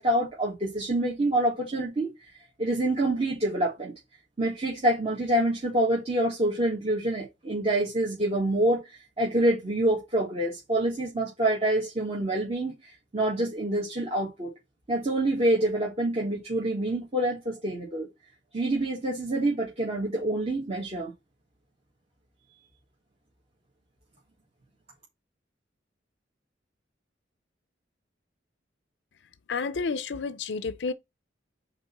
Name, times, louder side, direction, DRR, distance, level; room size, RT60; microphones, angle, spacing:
voice 1, 0.0-2.1 2.6-3.9 4.4-14.5 14.9-18.1 18.5-21.1, right 1 dB, 35° right, 1.9 m, -26 dB
voice 2, 29.5-30.9, left 4 dB, 70° left, 0.5 m, -30 dB
5.3 x 4.3 x 5.9 m
head